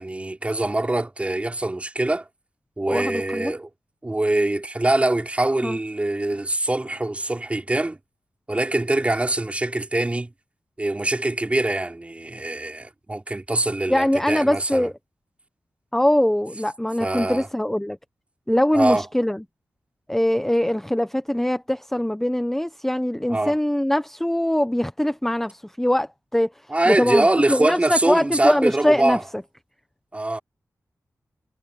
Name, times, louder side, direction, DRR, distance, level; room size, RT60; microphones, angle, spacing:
voice 1, 0.0-2.3 2.8-3.7 4.0-8.0 8.5-10.3 10.8-14.9 17.0-17.5 18.7-19.1 23.3-23.5 26.7-29.2 30.1-30.4, right 2 dB, 20° right, 2.9 m, -23 dB
voice 2, 2.9-3.5 5.6-5.8 13.9-14.9 15.9-18.0 18.5-19.4 20.1-26.5 26.9-29.4, left 1 dB, 5° left, 0.8 m, -22 dB
wide cardioid pair, 105°, 6 cm